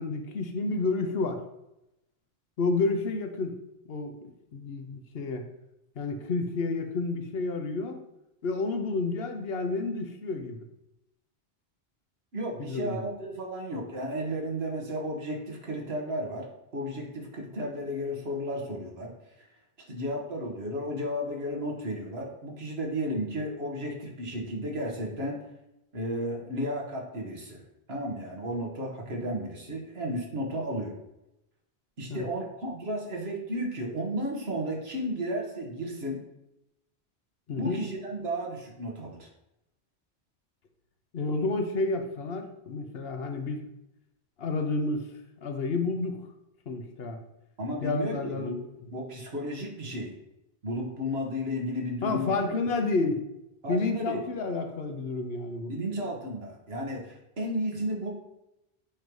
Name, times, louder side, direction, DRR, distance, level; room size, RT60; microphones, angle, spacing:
voice 1, 0.0-1.4 2.6-3.6 3.9-4.2 4.5-5.4 6.0-8.0 8.4-10.6 12.6-13.0 32.1-32.3 37.5-37.8 41.1-43.7 44.4-45.1 45.4-46.3 46.7-47.2 47.8-48.6 52.0-53.2 53.7-55.7, left 3 dB, 70° left, 6 dB, 1.1 m, -30 dB
voice 2, 12.3-16.5 16.7-19.1 19.4-19.5 19.9-25.4 25.9-27.6 27.9-31.0 32.0-36.2 37.6-39.3 47.6-48.6 48.9-50.1 50.6-52.3 53.6-54.2 55.7-58.1, equal, 80° right, 0 dB, 1.8 m, -33 dB
8.5 x 3.2 x 5.3 m, 0.88 s
omnidirectional pair, 1.1 m